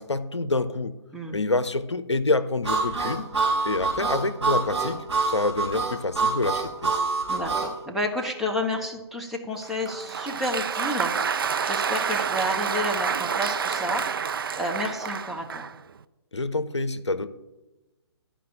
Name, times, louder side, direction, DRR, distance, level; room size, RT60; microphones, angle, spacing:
voice 1, 0.0-1.0 1.3-3.3 3.6-7.0 16.3-17.3, left 2 dB, 80° left, 13 dB, 0.7 m, -27 dB
Harmonica, 2.6-7.7, right 4 dB, 80° right, 3.7 m, -26 dB
voice 2, 7.3-11.1 11.6-14.0 14.6-15.7, left 1 dB, ahead, -2 dB, 0.9 m, -30 dB
Applause, 9.6-15.8, right 6 dB, 55° right, 0.5 m, -28 dB
11.5 x 5.1 x 8.6 m, 1.1 s
figure-of-eight pair, 130°, 14 cm